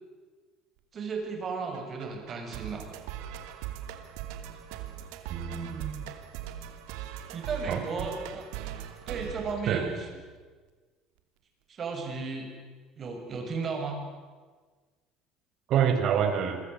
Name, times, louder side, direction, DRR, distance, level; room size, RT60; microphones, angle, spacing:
voice 1, 0.9-2.9 7.3-8.4 9.1-10.1 11.7-12.5 13.0-14.0, right 4 dB, 35° right, 3 dB, 7.2 m, -34 dB
sound 1, 1.7-10.3, right 11 dB, 85° right, 2.8 m, -40 dB
voice 2, 5.3-6.0 7.7-8.1 9.7-9.8 15.7-16.6, right 8 dB, 50° right, 8 dB, 4.3 m, -27 dB
28.0 x 24.0 x 8.4 m, 1.4 s
cardioid pair, 140°, 0 cm